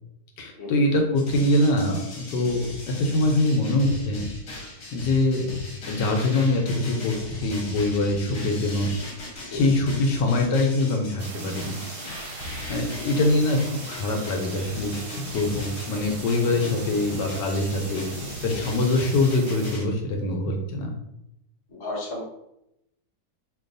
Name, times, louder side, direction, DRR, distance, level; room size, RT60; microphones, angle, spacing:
voice 1, 0.4-4.3 4.6-5.5 5.9-7.2 7.4-8.9 9.5-11.8 12.7-18.1 18.4-21.0, left 2 dB, 75° left, 2 dB, 1.2 m, -24 dB
sound 1, 1.2-19.8, left 2 dB, 45° left, 1.1 m, -38 dB
sound 2, 11.2-19.8, right 5 dB, 75° right, 1.0 m, -41 dB
voice 2, 18.5-18.8 21.7-22.2, left 2 dB, 30° left, -5 dB, 0.6 m, -34 dB
3.0 x 2.3 x 3.8 m, 0.84 s
omnidirectional pair, 2.0 m